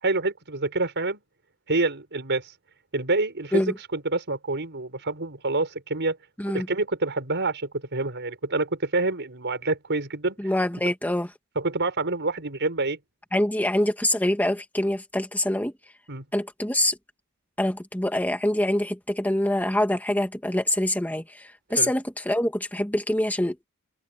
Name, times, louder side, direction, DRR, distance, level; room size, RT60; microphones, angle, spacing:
voice 1, 0.0-1.2 1.7-2.5 2.9-6.2 6.5-10.4 11.6-13.0 16.1-16.2 21.8-21.9, right 2 dB, 55° right, 5.6 m, -27 dB
voice 2, 10.4-11.3 13.3-15.7 16.3-17.0 17.6-23.7, left 1 dB, 10° left, 1.9 m, -25 dB
open air
head